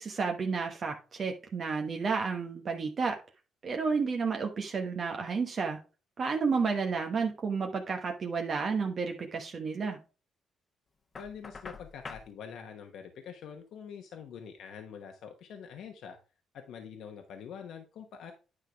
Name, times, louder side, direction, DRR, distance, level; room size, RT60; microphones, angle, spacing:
voice 1, 0.0-3.1 3.6-5.8 6.2-10.0, right 5 dB, 45° right, 3 dB, 1.1 m, -31 dB
Knock, 11.1-12.3, left 4 dB, 35° left, 1.0 m, -45 dB
voice 2, 11.2-16.2 16.5-18.3, left 7 dB, 75° left, 5 dB, 1.1 m, -45 dB
9.8 x 3.8 x 4.7 m, 0.34 s
cardioid pair, 90°, 0 cm